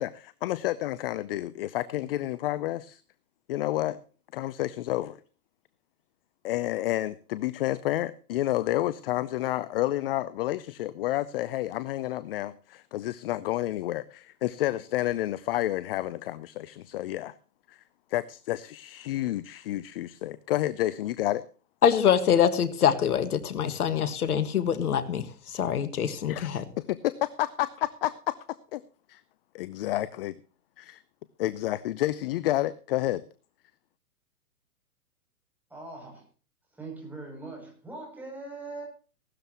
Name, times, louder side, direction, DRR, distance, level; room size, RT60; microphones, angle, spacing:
voice 1, 0.0-3.0 3.5-4.0 4.3-5.2 6.4-17.3 17.7-17.8 18.1-21.4 26.3-28.3 28.7-28.8 29.1-29.2 29.5-30.3 30.8-31.0 31.4-33.2, left 15 dB, 40° left, 0.6 m, -30 dB
voice 2, 21.8-26.6, left 8 dB, 75° left, 1.8 m, -24 dB
voice 3, 35.7-36.3 36.8-38.9, right 3 dB, 5° right, 7.2 m, -41 dB
17.0 x 13.0 x 3.0 m
hypercardioid pair, 140°, 45 cm